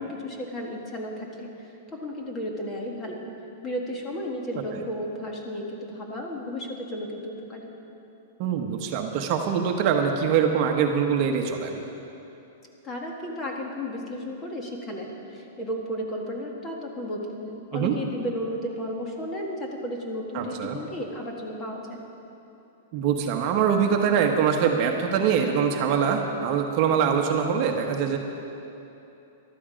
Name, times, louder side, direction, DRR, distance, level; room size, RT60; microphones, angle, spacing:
voice 1, 0.0-3.2 3.6-7.7 12.8-22.0, equal, 20° left, 0 dB, 1.6 m, -34 dB
voice 2, 8.4-11.8 17.7-17.9 20.3-20.8 22.9-28.2, right 7 dB, 40° right, 3 dB, 1.0 m, -23 dB
14.0 x 12.5 x 5.1 m, 2.9 s
supercardioid pair, 160°, 0 cm